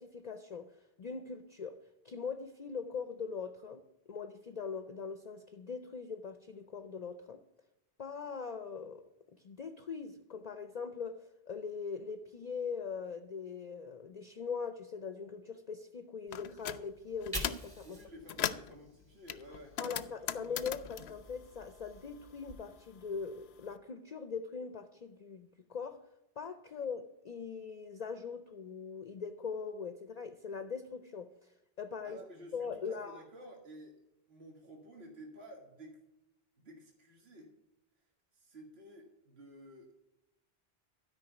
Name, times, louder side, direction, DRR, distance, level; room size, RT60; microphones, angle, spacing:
voice 1, 0.0-3.8 4.1-7.4 8.0-9.0 9.3-18.0 18.4-18.5 19.8-26.1 26.4-32.2 32.5-33.2, left 5 dB, 45° left, 9 dB, 0.6 m, -41 dB
sound 1, 16.3-16.8 17.2-17.7 18.1-18.7 19.3-22.2 22.5-23.6, left 9 dB, 80° left, 0.9 m, -39 dB
Fire, 16.9-20.1 20.5-22.5, equal, 20° right, 2.3 m, -47 dB
voice 2, 17.8-20.1 32.0-33.9 34.3-36.0 36.6-37.5 38.3-39.9, right 1 dB, 75° right, 0 dB, 2.0 m, -52 dB
12.5 x 5.4 x 8.9 m, 0.93 s
omnidirectional pair, 1.1 m